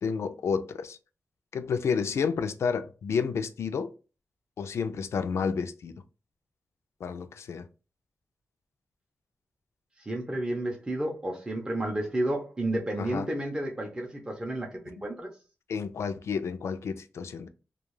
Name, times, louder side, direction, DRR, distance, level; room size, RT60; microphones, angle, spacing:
voice 1, 0.0-1.0 1.5-3.9 4.6-5.9 7.0-7.7 13.0-13.3 15.7-17.5, left 6 dB, 75° left, 0.3 m, -30 dB
voice 2, 10.1-15.3, right 1 dB, 15° right, 0.5 m, -31 dB
2.3 x 2.3 x 3.0 m
wide cardioid pair, 175°, 5 cm